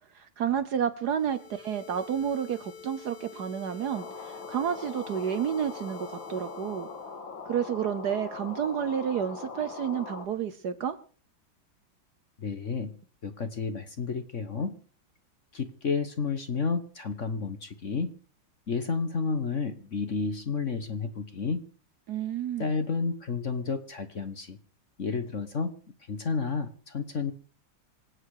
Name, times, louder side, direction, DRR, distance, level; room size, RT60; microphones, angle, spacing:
voice 1, 0.1-6.9 7.5-11.0 22.1-22.7, right 8 dB, 60° right, 11 dB, 1.2 m, -30 dB
sound 1, 1.0-7.2, left 6 dB, 85° left, 1.9 m, -48 dB
sound 2, 3.9-10.3, left 4 dB, 65° left, 2.8 m, -41 dB
voice 2, 12.4-12.9 13.2-14.7 15.5-18.1 18.7-21.6 22.6-24.6 25.0-25.7 26.1-27.3, left 5 dB, 40° left, 9 dB, 1.3 m, -31 dB
26.0 x 8.7 x 4.9 m, 0.41 s
omnidirectional pair, 2.3 m